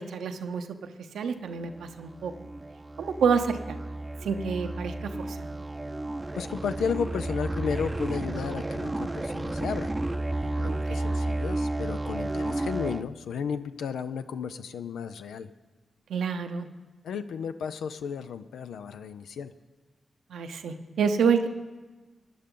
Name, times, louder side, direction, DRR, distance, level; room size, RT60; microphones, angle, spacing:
voice 1, 0.0-2.3 3.0-3.8 4.2-5.6 10.6-11.1 16.1-16.7 20.3-21.5, right 6 dB, 85° right, 7 dB, 0.7 m, -28 dB
sound 1, 1.6-13.0, right 2 dB, 25° right, 0.6 m, -32 dB
voice 2, 6.4-9.9 10.3-15.5 17.0-19.5, left 6 dB, 90° left, 11 dB, 0.4 m, -33 dB
16.0 x 10.5 x 3.7 m, 1.3 s
supercardioid pair, 40°, 0 cm